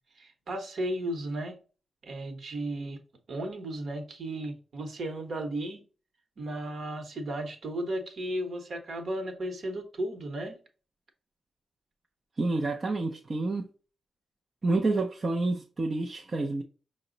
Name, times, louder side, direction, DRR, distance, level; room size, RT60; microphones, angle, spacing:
voice 1, 0.2-1.6 2.0-3.0 3.3-5.8 6.4-10.6, right 1 dB, 50° right, 1.0 m, -34 dB
voice 2, 12.4-13.7 14.6-16.6, right 2 dB, 30° right, 0.5 m, -28 dB
5.4 x 2.0 x 3.8 m
wide cardioid pair, 160°, 0 cm